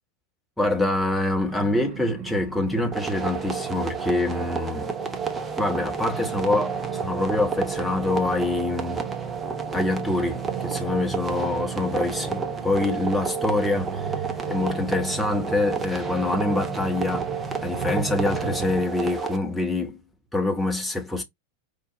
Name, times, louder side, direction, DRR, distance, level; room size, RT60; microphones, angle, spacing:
voice 1, 0.6-4.9 5.6-9.0 9.7-17.3 17.6-20.0 20.3-21.2, left 2 dB, 5° left, 1.0 m, -25 dB
sound 1, 1.5-18.9, right 7 dB, 50° right, 0.7 m, -37 dB
sound 2, 2.9-19.4, right 5 dB, 15° right, 0.7 m, -31 dB
5.0 x 2.2 x 3.0 m
figure-of-eight pair, 90°, 0 cm